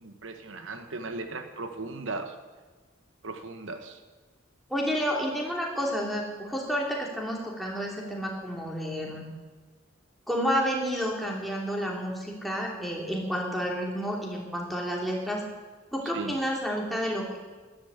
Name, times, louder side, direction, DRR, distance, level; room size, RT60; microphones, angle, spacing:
voice 1, 0.0-2.4 3.2-4.0 16.1-16.3, right 3 dB, 75° right, 7 dB, 1.2 m, -37 dB
voice 2, 4.7-9.2 10.3-15.4 15.9-17.4, equal, ahead, -2 dB, 2.9 m, -30 dB
13.0 x 11.5 x 8.1 m, 1.3 s
head